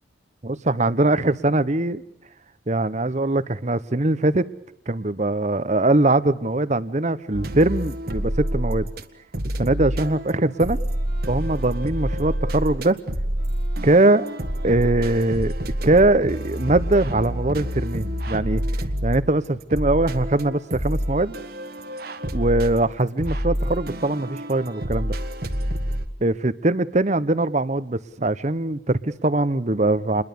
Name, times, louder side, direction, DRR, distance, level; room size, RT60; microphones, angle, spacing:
voice 1, 0.4-2.0 2.7-4.5 4.9-8.9 9.6-10.8 11.3-13.0 13.8-14.3 14.6-15.5 15.8-18.6 19.0-21.3 22.3-25.1 26.2-30.2, right 2 dB, 40° right, 0.9 m, -21 dB
sound 1, 7.3-9.0 9.3-26.1, equal, 55° right, 1.7 m, -28 dB
28.0 x 21.5 x 6.9 m
head